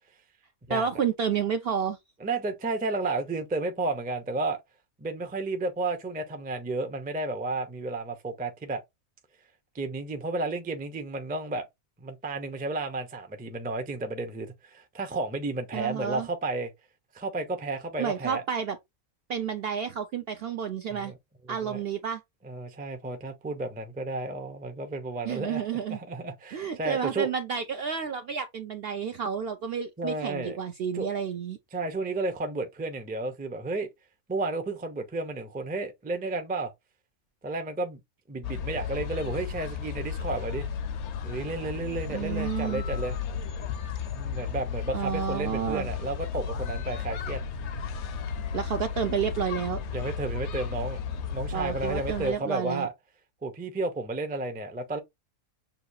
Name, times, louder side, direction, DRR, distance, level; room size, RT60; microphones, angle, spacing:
voice 1, 0.7-2.0 15.7-16.3 18.0-18.8 19.3-21.1 21.5-22.2 25.2-26.0 26.5-31.6 42.1-42.8 44.9-45.9 48.5-49.8 51.5-52.9, right 7 dB, 65° right, 0.6 m, -30 dB
voice 2, 2.2-4.6 5.0-8.8 9.7-11.7 12.0-16.7 17.1-18.4 20.9-21.1 21.5-21.8 22.4-27.3 30.0-30.6 30.9-31.1 31.7-33.9 34.3-36.7 37.4-38.0 38.3-40.7 41.2-43.2 44.1-47.4 49.9-51.0 51.3-52.9 53.4-55.0, right 2 dB, 15° right, 0.3 m, -32 dB
sound 1, 38.4-52.3, left 6 dB, 65° left, 0.8 m, -34 dB
6.6 x 2.3 x 2.7 m
omnidirectional pair, 1.5 m